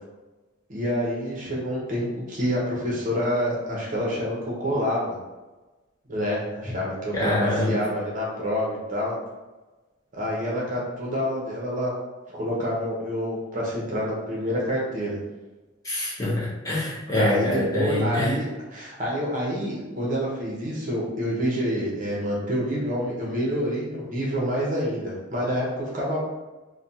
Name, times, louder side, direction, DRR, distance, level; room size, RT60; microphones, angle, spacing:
voice 1, 0.7-5.2 6.1-9.1 10.1-11.9 12.3-15.2 17.1-26.2, equal, 40° right, -4 dB, 0.8 m, -27 dB
voice 2, 7.1-7.8 15.8-18.4, left 1 dB, 15° left, -6 dB, 0.5 m, -25 dB
3.2 x 2.2 x 2.7 m, 1.2 s
head